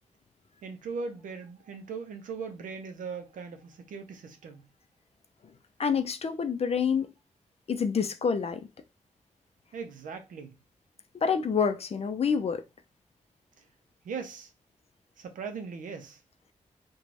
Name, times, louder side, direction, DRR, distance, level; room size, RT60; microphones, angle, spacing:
voice 1, 0.6-4.6 9.7-10.5 14.0-14.5 15.2-16.2, right 5 dB, 80° right, 0.5 m, -39 dB
voice 2, 5.8-7.1 7.7-8.6 11.2-12.6, left 6 dB, 50° left, 0.4 m, -27 dB
3.0 x 2.2 x 2.5 m
supercardioid pair, 40°, 13 cm